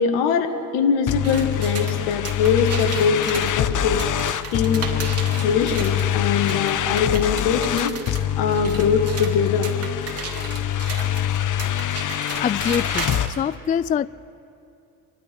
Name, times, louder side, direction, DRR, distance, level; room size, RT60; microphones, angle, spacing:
voice 1, 0.0-4.1 4.5-5.1 5.4-9.7, left 6 dB, 75° left, 6 dB, 1.8 m, -22 dB
sound 1, 1.1-13.3, left 10 dB, 45° left, 1.0 m, -25 dB
sound 2, 1.2-6.1 6.5-13.4, right 4 dB, 35° right, 2.9 m, -35 dB
voice 2, 12.4-14.1, left 8 dB, 20° left, 19 dB, 0.3 m, -24 dB
28.5 x 12.0 x 3.5 m, 2.6 s
hypercardioid pair, 55°, 41 cm